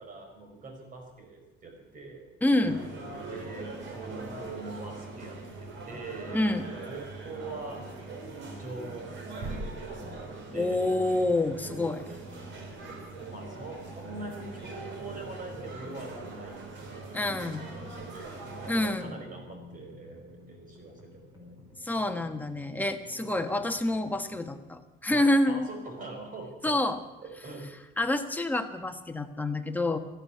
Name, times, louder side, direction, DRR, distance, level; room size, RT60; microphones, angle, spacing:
voice 1, 0.0-2.3 3.3-3.7 3.9-7.8 8.4-10.8 11.6-12.0 12.9-16.6 17.4-18.4 18.8-21.5 23.1-23.3 25.1-26.8 27.2-27.7, right 3 dB, 40° right, 4 dB, 4.8 m, -43 dB
voice 2, 2.4-2.8 6.3-6.7 10.5-12.0 17.1-17.7 18.7-19.1 21.8-25.7 26.6-27.0 28.0-30.0, left 1 dB, 10° left, 5 dB, 1.2 m, -27 dB
sound 1, 2.6-19.0, right 3 dB, 60° right, 4.0 m, -42 dB
sound 2, 8.8-24.6, left 2 dB, 15° right, 5.0 m, -52 dB
14.0 x 12.0 x 8.4 m, 1.0 s
cardioid pair, 140°, 21 cm